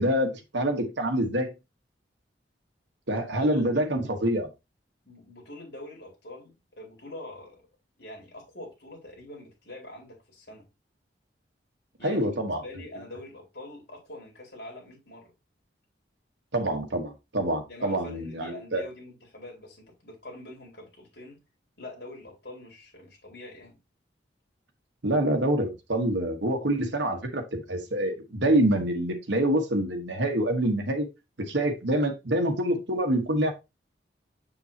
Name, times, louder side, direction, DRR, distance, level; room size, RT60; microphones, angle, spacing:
voice 1, 0.0-1.5 3.1-4.5 12.0-12.6 16.5-18.8 25.0-31.1 31.4-33.5, right 1 dB, 80° right, 1.3 m, -26 dB
voice 2, 3.4-4.4 5.0-7.6 8.0-10.7 12.0-15.3 17.7-21.4 21.8-23.8, left 1 dB, 60° left, 4.6 m, -44 dB
7.0 x 7.0 x 2.9 m
head